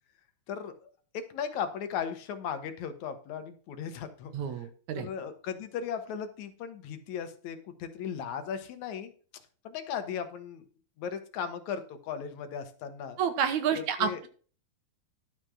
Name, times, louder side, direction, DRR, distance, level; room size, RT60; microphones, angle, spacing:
voice 1, 0.5-4.6 5.0-9.1 9.6-10.6 11.0-13.2 14.0-14.2, left 7 dB, 70° left, 9 dB, 2.4 m, -37 dB
voice 2, 4.3-5.1 13.2-14.3, right 7 dB, 75° right, 8 dB, 2.5 m, -29 dB
11.5 x 5.2 x 6.1 m, 0.41 s
omnidirectional pair, 3.5 m